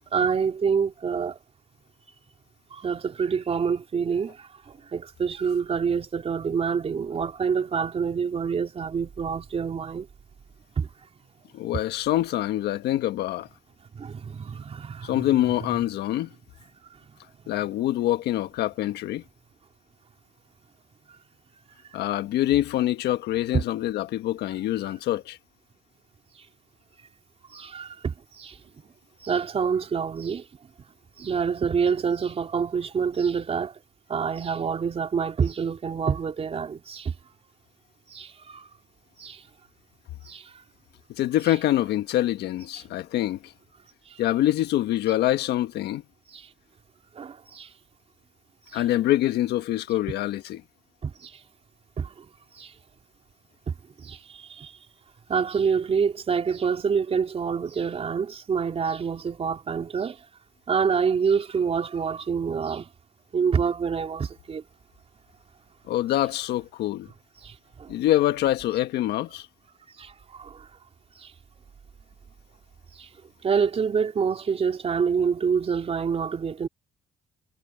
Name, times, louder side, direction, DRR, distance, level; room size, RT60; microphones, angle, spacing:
voice 1, 0.1-1.4 2.7-10.1 10.8-10.9 13.9-15.3 27.5-28.6 29.2-30.4 31.2-33.7 34.1-37.1 38.1-38.7 39.2-39.4 40.2-40.5 42.7-42.8 44.1-44.2 46.3-46.5 47.2-47.7 48.7-48.8 51.0-51.3 52.0-52.3 52.6-52.7 54.0-54.7 55.3-60.2 60.7-62.9 63.3-64.6 67.4-67.9 70.0-70.7 71.2-71.3 73.0-73.1 73.4-76.7, right 6 dB, 35° right, 3.9 m, -27 dB
voice 2, 11.5-13.5 15.0-16.3 17.5-19.2 21.9-25.4 41.2-43.5 44.2-46.0 48.7-50.6 65.9-67.1 67.9-69.5, left 13 dB, 75° left, 1.4 m, -25 dB
cardioid pair, 110°, 17 cm